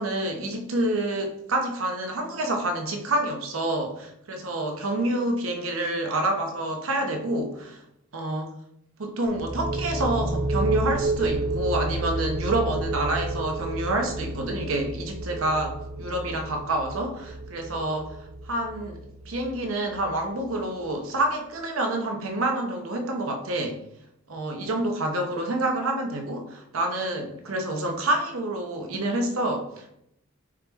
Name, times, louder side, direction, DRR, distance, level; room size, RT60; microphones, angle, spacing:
voice 1, 0.0-7.8 8.1-8.5 9.0-18.2 18.4-19.0 19.3-23.8 24.3-29.9, right 1 dB, 90° right, 3 dB, 0.8 m, -28 dB
sound 1, 9.3-20.8, right 2 dB, 30° right, 0.4 m, -31 dB
4.8 x 3.0 x 3.4 m, 0.77 s
head